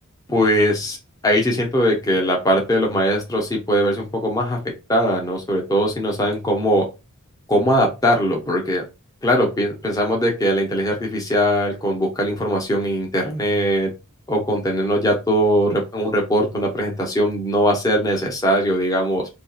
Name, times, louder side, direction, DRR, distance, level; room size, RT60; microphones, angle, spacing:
voice 1, 0.3-1.0 1.2-4.6 4.9-6.8 7.5-8.8 9.2-13.9 14.3-19.3, equal, 15° left, 0 dB, 0.6 m, -20 dB
2.7 x 2.3 x 2.3 m, 0.27 s
head